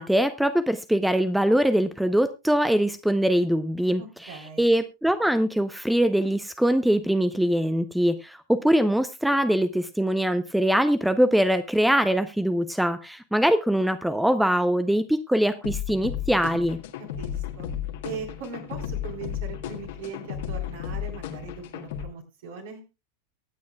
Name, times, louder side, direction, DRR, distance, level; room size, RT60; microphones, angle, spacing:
voice 1, 0.0-16.8, equal, ahead, 13 dB, 0.6 m, -23 dB
voice 2, 4.0-4.7 17.2-17.7 18.0-22.8, right 5 dB, 55° right, 3 dB, 4.1 m, -40 dB
sound 1, 15.6-22.0, left 10 dB, 55° left, 1.7 m, -34 dB
23.5 x 9.4 x 2.3 m, 0.27 s
figure-of-eight pair, 90°, 0 cm